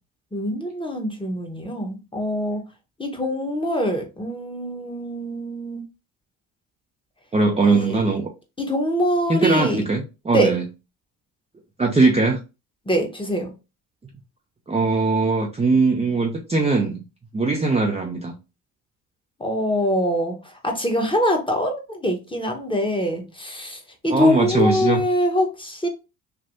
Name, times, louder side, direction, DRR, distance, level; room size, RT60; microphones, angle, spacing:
voice 1, 0.3-2.7 3.0-5.8 7.6-8.2 8.6-9.8 10.3-10.6 12.9-13.5 19.4-20.4 20.6-25.9, equal, 10° left, 1.1 m, -24 dB
voice 2, 7.3-8.3 9.3-10.6 11.8-12.4 14.7-17.0 17.3-18.3 24.1-25.0, right 3 dB, 15° right, 0.6 m, -20 dB
3.4 x 2.6 x 2.6 m
hypercardioid pair, 60°, 44 cm